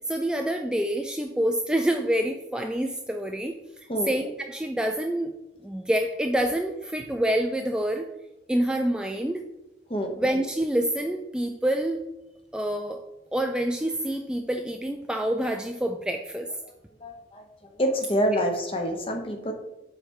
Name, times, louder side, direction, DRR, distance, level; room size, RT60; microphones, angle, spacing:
voice 1, 0.0-3.6 4.1-5.3 5.6-8.1 8.5-9.4 10.2-12.0 12.5-13.0 13.3-16.5 18.3-18.4, right 1 dB, 5° right, 3 dB, 0.3 m, -27 dB
voice 2, 17.0-17.4 17.8-19.5, equal, 30° left, 3 dB, 0.9 m, -26 dB
7.4 x 3.3 x 4.7 m, 0.97 s
head